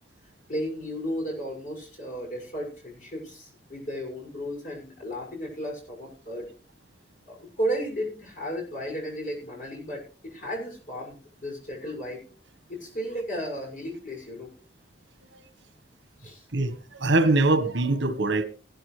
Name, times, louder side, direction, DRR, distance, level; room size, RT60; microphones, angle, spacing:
voice 1, 0.5-6.5 7.3-12.3 12.7-14.5 16.2-16.4, equal, 45° left, 6.5 m, -34 dB
voice 2, 16.5-18.4, right 2 dB, 85° right, 1.4 m, -23 dB
18.0 x 12.0 x 3.3 m
head